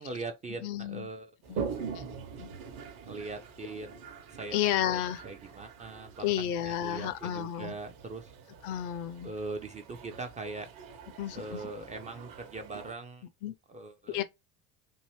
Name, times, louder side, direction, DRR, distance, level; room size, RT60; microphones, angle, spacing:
voice 1, 0.0-1.6 3.1-3.9 4.3-6.3 6.7-8.3 9.2-10.7 11.3-13.2 13.7-14.2, right 3 dB, 20° right, 0.3 m, -41 dB
voice 2, 0.6-1.1 1.5-2.0 2.4-2.5 4.5-5.2 6.2-7.7 8.6-9.3 11.2-11.7 13.4-13.5 14.1-14.2, left 11 dB, 50° left, 0.5 m, -32 dB
Toilet flush, 1.4-12.9, right 6 dB, 50° right, 0.9 m, -44 dB
2.8 x 2.6 x 3.0 m
hypercardioid pair, 75°, 43 cm